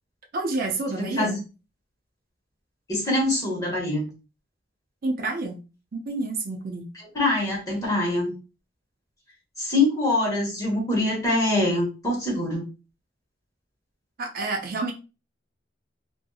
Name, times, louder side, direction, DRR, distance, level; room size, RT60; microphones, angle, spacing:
voice 1, 0.3-1.4 5.0-5.6 5.9-6.9 14.2-14.9, right 2 dB, 50° right, 3 dB, 0.5 m, -29 dB
voice 2, 0.9-1.4 2.9-4.1 7.1-8.3 9.6-12.6, left 2 dB, 20° left, -3 dB, 1.2 m, -24 dB
2.6 x 2.6 x 2.3 m, 0.31 s
head